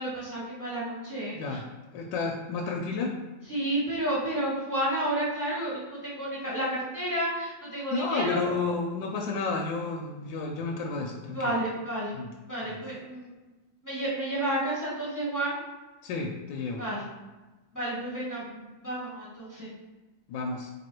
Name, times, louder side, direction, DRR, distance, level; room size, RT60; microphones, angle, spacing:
voice 1, 0.0-1.6 3.5-8.5 11.3-12.1 12.5-13.3 13.8-15.5 16.8-17.0 17.7-19.7, right 1 dB, 15° left, -7 dB, 0.8 m, -31 dB
voice 2, 1.3-1.7 1.9-3.1 7.9-11.5 12.1-12.3 12.7-12.8 16.0-16.8 20.3-20.7, left 4 dB, 85° left, 1 dB, 1.3 m, -31 dB
3.7 x 3.0 x 4.4 m, 1.2 s
omnidirectional pair, 2.0 m